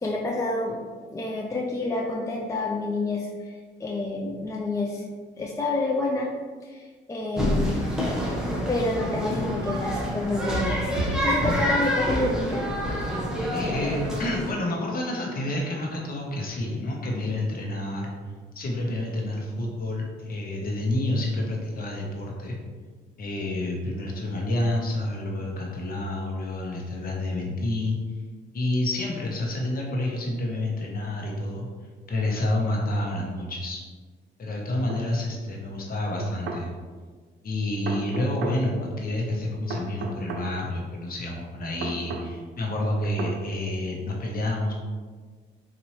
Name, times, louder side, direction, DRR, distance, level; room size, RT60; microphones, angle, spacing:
voice 1, 0.0-0.8 1.1-5.0 5.3-6.3 6.6-7.8 8.7-12.6, left 2 dB, 15° left, -2 dB, 0.4 m, -28 dB
sound 1, 7.4-14.5, equal, 5° right, 0.8 m, -27 dB
voice 2, 13.5-18.1 18.5-22.5 23.2-28.0 28.5-31.7 32.1-33.8 34.4-36.7 37.4-44.7, left 1 dB, 50° left, -1 dB, 1.0 m, -29 dB
sound 2, 34.9-35.0 36.2-36.6 37.9-38.6 39.7-40.5 41.8-42.3 43.2-43.4, right 3 dB, 75° right, 0.6 m, -33 dB
4.1 x 2.6 x 3.1 m, 1.5 s
cardioid pair, 90°, 20 cm